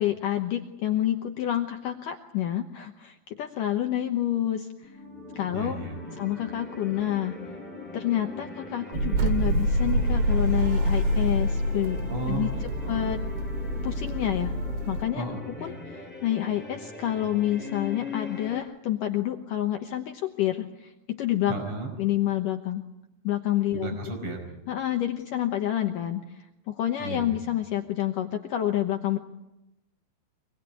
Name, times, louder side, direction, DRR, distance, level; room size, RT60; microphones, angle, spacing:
voice 1, 0.0-4.9 5.4-5.8 6.1-7.4 7.9-12.0 12.3-13.2 13.8-14.6 14.9-15.2 15.6-21.5 22.0-22.8 23.2-23.9 24.7-29.2, left 12 dB, 65° left, 4 dB, 2.3 m, -28 dB
sound 1, 4.8-14.8, left 2 dB, 25° left, 3.7 m, -47 dB
sound 2, 4.9-18.6, left 4 dB, ahead, 5.6 m, -42 dB
voice 2, 5.5-6.1 12.1-13.1 15.1-15.8 21.5-21.9 23.7-24.5 27.0-27.4, right 3 dB, 35° right, 5 dB, 5.7 m, -34 dB
sound 3, 8.9-15.1, equal, 80° right, 3.8 m, -26 dB
25.0 x 20.0 x 9.7 m, 0.96 s
omnidirectional pair, 4.8 m